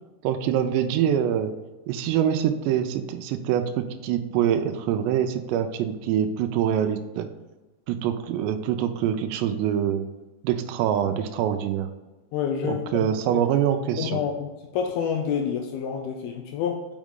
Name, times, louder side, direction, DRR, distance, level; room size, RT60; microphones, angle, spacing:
voice 1, 0.2-1.5 1.9-7.3 7.9-10.1 10.4-11.9 12.6-14.2, right 9 dB, 85° right, 7 dB, 2.7 m, -25 dB
voice 2, 12.3-13.1 13.3-13.5 14.0-16.9, left 7 dB, 80° left, 3 dB, 2.2 m, -28 dB
6.2 x 5.7 x 3.7 m, 1.2 s
omnidirectional pair, 4.9 m